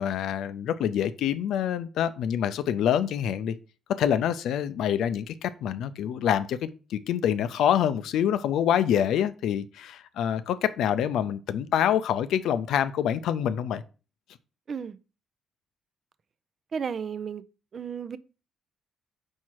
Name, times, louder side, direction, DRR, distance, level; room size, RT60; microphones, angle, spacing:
voice 1, 0.0-3.6 3.9-13.8, left 9 dB, 80° left, 0.5 m, -26 dB
voice 2, 16.7-17.4 17.7-18.2, right 6 dB, 50° right, 0.5 m, -33 dB
4.7 x 4.4 x 4.6 m
cardioid pair, 90°, 0 cm